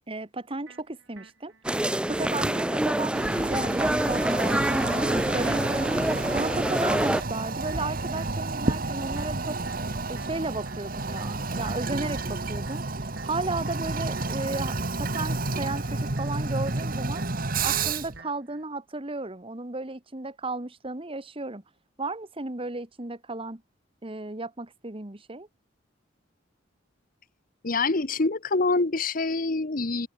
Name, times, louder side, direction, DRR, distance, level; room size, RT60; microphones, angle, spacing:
voice 1, 0.1-1.5 2.1-9.6 10.1-12.8 13.2-17.2 17.6-21.6 22.0-23.6 24.0-25.5, right 2 dB, 30° right, 1.5 m, -34 dB
sound 1, 0.7-18.6, right 4 dB, 70° right, 6.3 m, -52 dB
sound 2, 1.6-7.2, right 1 dB, 5° right, 0.4 m, -26 dB
Toilet flush, 3.1-18.2, right 3 dB, 45° right, 1.8 m, -31 dB
voice 2, 27.6-30.1, left 3 dB, 45° left, 1.0 m, -25 dB
open air
head